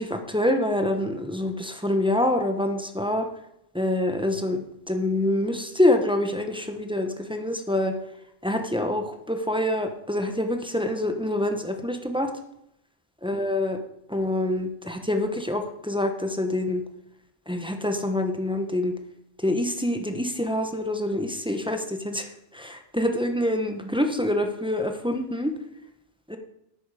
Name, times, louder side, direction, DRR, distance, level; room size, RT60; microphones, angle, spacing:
voice 1, 0.0-3.3 3.7-7.9 8.4-12.3 13.2-13.8 14.1-16.8 17.5-18.9 19.4-22.3 22.5-25.5 26.3-26.4, left 1 dB, 5° right, 5 dB, 0.9 m, -26 dB
11.0 x 8.8 x 4.9 m, 0.80 s
omnidirectional pair, 1.3 m